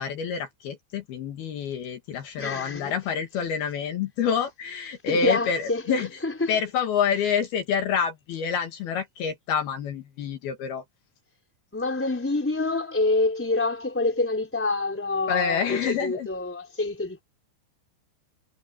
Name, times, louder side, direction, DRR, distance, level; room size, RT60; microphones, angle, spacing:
voice 1, 0.0-6.1 6.5-10.8 15.3-16.3, left 7 dB, 65° left, 3.6 m, -27 dB
voice 2, 2.4-2.9 5.1-6.5 11.7-17.2, left 2 dB, 5° left, 3.7 m, -27 dB
omnidirectional pair, 4.9 m